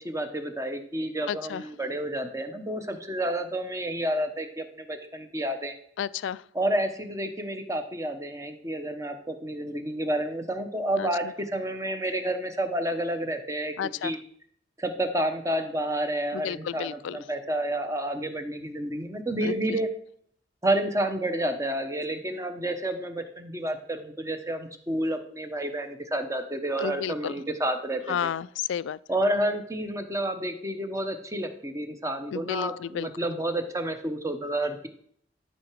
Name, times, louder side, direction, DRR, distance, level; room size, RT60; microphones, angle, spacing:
voice 1, 0.0-5.8 6.5-14.2 14.8-19.9 20.6-28.3 29.1-34.9, right 1 dB, 15° right, 7 dB, 1.0 m, -30 dB
voice 2, 1.3-1.6 6.0-6.4 11.0-11.1 13.8-14.1 16.3-17.2 19.4-19.5 26.8-27.3 28.1-29.0 32.3-33.1, left 8 dB, 80° left, 19 dB, 0.3 m, -31 dB
12.0 x 5.8 x 4.7 m, 0.63 s
head